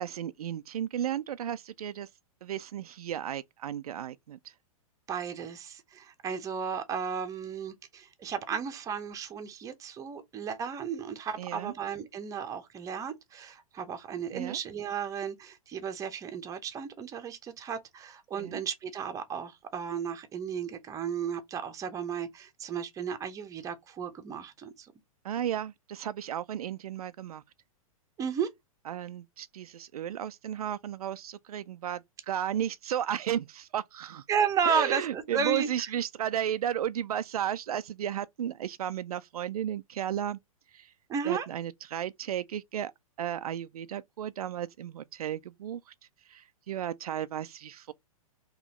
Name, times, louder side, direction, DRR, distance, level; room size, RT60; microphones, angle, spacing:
voice 1, 0.0-2.1 2.4-4.5 11.4-11.7 14.3-14.6 18.4-18.6 25.2-27.4 28.9-34.2 34.7-40.4 40.7-40.9 41.2-42.9 43.2-45.9 46.3-47.9, right 10 dB, 90° right, 0.4 m, -34 dB
voice 2, 5.1-24.9 28.2-28.5 34.3-35.9 41.1-41.5, right 7 dB, 20° right, 0.8 m, -34 dB
4.0 x 3.1 x 3.0 m
hypercardioid pair, 135°, 18 cm